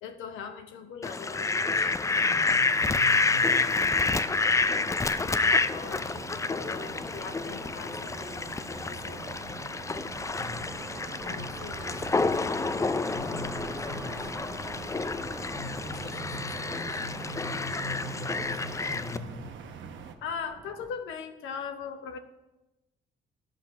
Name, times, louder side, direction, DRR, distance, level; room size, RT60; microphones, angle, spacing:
voice 1, 0.0-1.9 5.7-6.2 6.5-8.5 8.8-9.4 11.2-12.5 20.2-22.2, left 6 dB, 90° left, 8 dB, 1.0 m, -40 dB
Fowl, 1.0-19.2, left 3 dB, 15° left, 0.3 m, -29 dB
sound 1, 1.7-20.9, right 1 dB, 5° right, 1.3 m, -49 dB
voice 2, 2.1-3.7 10.4-10.7 11.2-11.6 13.1-14.3 15.5-19.5, left 3 dB, 35° left, -2 dB, 1.5 m, -42 dB
sound 2, 3.1-20.1, right 6 dB, 70° right, 0.9 m, -44 dB
10.5 x 5.3 x 6.0 m, 0.99 s
cardioid pair, 90°, 20 cm